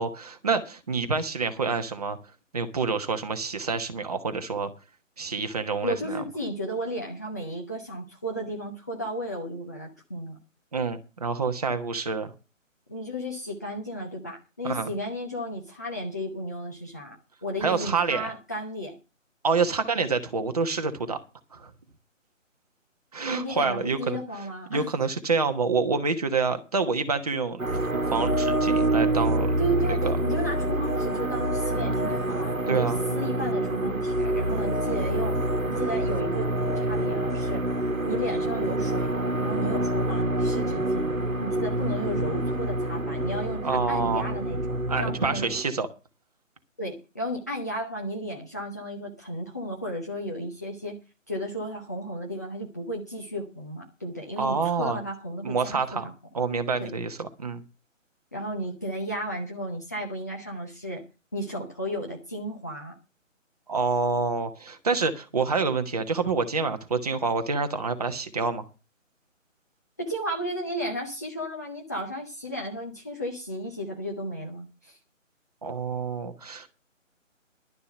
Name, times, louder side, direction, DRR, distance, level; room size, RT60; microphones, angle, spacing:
voice 1, 0.0-2.2 2.5-4.7 5.2-6.2 10.7-12.3 14.6-14.9 17.6-18.3 19.4-21.2 21.5-21.7 23.1-24.2 24.7-27.6 27.9-29.5 29.8-30.2 32.7-33.0 43.6-44.2 44.9-45.9 54.4-55.0 55.4-56.1 56.3-57.6 63.7-68.6 75.6-76.7, right 4 dB, 30° right, 8 dB, 1.2 m, -27 dB
voice 2, 5.8-10.4 12.9-17.2 17.4-19.0 23.3-24.9 29.6-35.4 35.7-37.6 38.0-41.1 41.4-45.5 46.8-51.0 51.3-56.1 56.8-56.9 58.3-61.0 61.3-63.0 70.0-75.0, equal, 15° left, -2 dB, 0.8 m, -33 dB
sound 1, 27.6-45.6, right 1 dB, 90° right, 1.3 m, -27 dB
12.0 x 6.8 x 7.7 m, 0.30 s
figure-of-eight pair, 150°, 39 cm